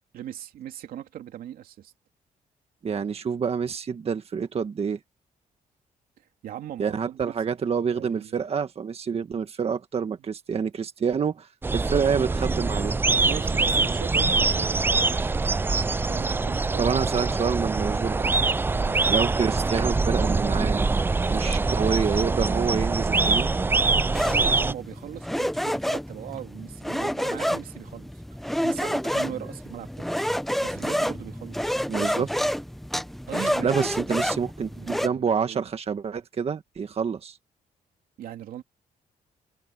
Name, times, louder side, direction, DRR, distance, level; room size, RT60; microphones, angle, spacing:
voice 1, 0.1-1.9 6.4-7.3 7.9-8.4 13.2-15.4 16.1-17.0 18.7-19.0 24.3-28.1 28.6-30.1 30.6-31.7 33.3-33.8 34.7-35.6 38.2-38.6, right 11 dB, 85° right, 3.1 m, -39 dB
voice 2, 2.8-5.0 6.8-12.9 16.8-18.4 19.1-20.9 21.3-23.5 31.9-32.3 33.6-37.4, right 6 dB, 45° right, 1.6 m, -27 dB
sound 1, 11.6-24.7, right 3 dB, 15° right, 0.3 m, -24 dB
sound 2, 24.1-35.1, equal, ahead, 0.9 m, -29 dB
cardioid pair, 100°, 14 cm